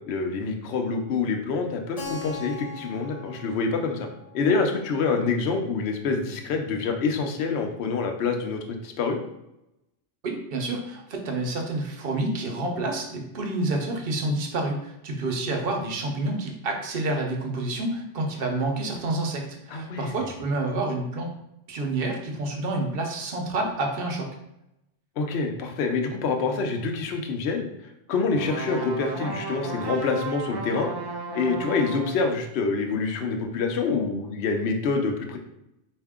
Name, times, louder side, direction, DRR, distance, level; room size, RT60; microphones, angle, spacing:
voice 1, 0.1-4.1 4.3-9.2 19.7-20.1 25.2-27.7 28.1-30.9 31.3-35.4, left 4 dB, 65° left, 4 dB, 0.9 m, -26 dB
Keyboard (musical), 2.0-6.5, left 4 dB, 35° left, 0.8 m, -42 dB
voice 2, 10.2-21.3 21.7-24.3, right 2 dB, 55° right, 2 dB, 0.9 m, -28 dB
sound 1, 28.3-32.3, right 3 dB, 35° right, 0.4 m, -34 dB
4.5 x 2.7 x 3.6 m, 0.85 s
omnidirectional pair, 1.2 m